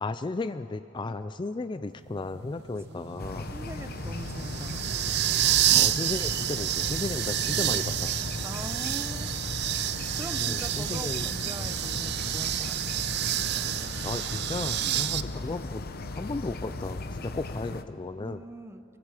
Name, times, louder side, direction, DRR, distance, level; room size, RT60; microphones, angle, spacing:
voice 1, 0.0-3.5 5.8-8.1 10.4-11.3 14.0-15.8 16.1-18.4, left 3 dB, 25° left, 11 dB, 0.4 m, -34 dB
sound 1, 2.1-15.2, right 12 dB, 55° right, 0.5 m, -29 dB
sound 2, 3.2-17.8, left 2 dB, 50° left, 0.9 m, -37 dB
voice 2, 3.5-4.9 8.4-9.6 10.2-12.8 14.8-15.1 18.2-18.8, right 1 dB, 15° right, 10 dB, 0.7 m, -42 dB
26.5 x 23.5 x 4.9 m, 2.9 s
head